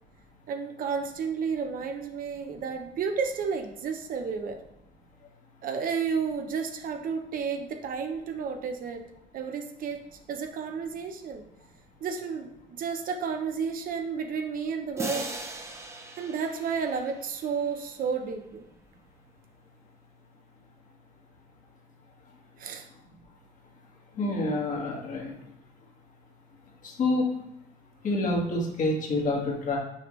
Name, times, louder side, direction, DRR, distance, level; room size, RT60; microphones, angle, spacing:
voice 1, 0.5-4.6 5.6-9.0 9.3-10.0 10.3-11.4 12.0-15.4 16.2-18.6 22.6-22.9, right 6 dB, 55° right, 5 dB, 0.8 m, -32 dB
sound 1, 15.0-17.8, right 2 dB, 15° right, 0.8 m, -39 dB
voice 2, 24.2-25.3 26.8-27.3 28.0-29.8, left 2 dB, 50° left, -1 dB, 1.7 m, -27 dB
6.4 x 5.0 x 3.1 m, 0.86 s
cardioid pair, 110°, 17 cm